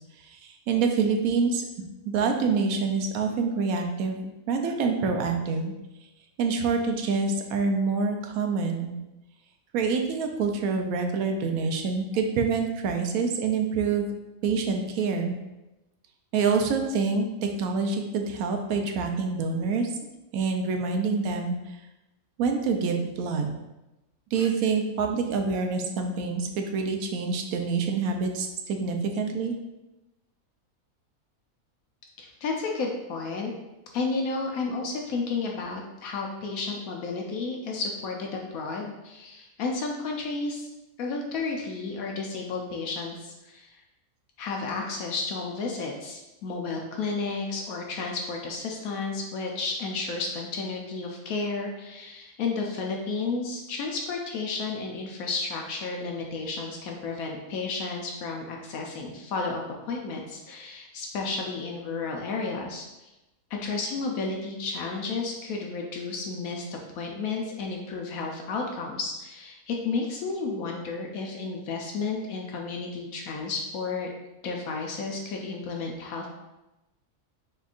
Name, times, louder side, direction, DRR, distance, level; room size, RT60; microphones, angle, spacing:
voice 1, 0.2-1.6 2.0-4.2 4.5-5.7 6.4-8.9 9.7-14.1 14.4-15.3 16.3-19.9 20.3-21.6 22.4-23.5 24.3-29.5, right 4 dB, 85° right, 4 dB, 1.0 m, -26 dB
voice 2, 32.2-33.5 33.9-40.7 41.0-43.7 44.4-62.8 63.5-74.1 74.4-76.3, left 4 dB, 80° left, 1 dB, 1.0 m, -32 dB
4.3 x 3.7 x 2.4 m, 0.98 s
omnidirectional pair, 1.5 m